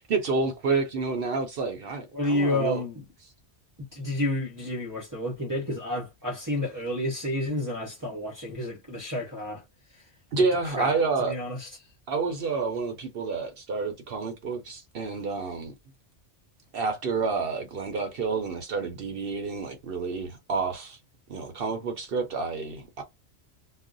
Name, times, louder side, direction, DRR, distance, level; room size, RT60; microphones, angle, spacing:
voice 1, 0.1-2.8 10.3-11.3 12.1-15.7 16.7-21.0 21.3-23.0, right 4 dB, 60° right, 0.7 m, -29 dB
voice 2, 2.1-3.0 3.8-9.6 10.6-11.7, left 1 dB, 20° right, 0.6 m, -30 dB
2.4 x 2.1 x 3.8 m
omnidirectional pair, 1.2 m